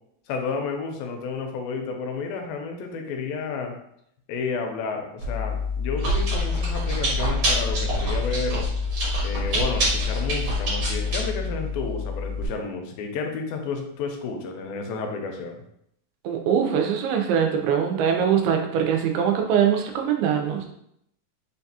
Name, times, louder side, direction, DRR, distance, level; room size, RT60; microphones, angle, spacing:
voice 1, 0.3-3.8 4.3-8.7 9.2-15.6, left 4 dB, 80° left, 3 dB, 2.3 m, -31 dB
Chewing mastication, 5.2-12.5, left 1 dB, 60° right, 1.4 m, -25 dB
voice 2, 16.2-20.7, right 8 dB, 85° right, 3 dB, 2.5 m, -22 dB
5.9 x 2.3 x 2.7 m, 0.74 s
omnidirectional pair, 4.3 m